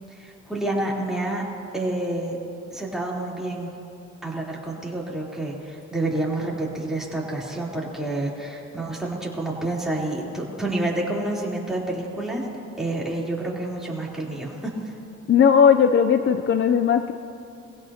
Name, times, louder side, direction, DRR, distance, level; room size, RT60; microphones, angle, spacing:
voice 1, 0.1-1.4 1.7-2.4 2.7-3.7 4.2-12.5 12.8-14.9, right 2 dB, ahead, -5 dB, 3.6 m, -28 dB
voice 2, 15.3-17.1, left 7 dB, 40° left, 8 dB, 0.6 m, -17 dB
23.5 x 16.5 x 2.9 m, 2.7 s
cardioid pair, 90°, 30 cm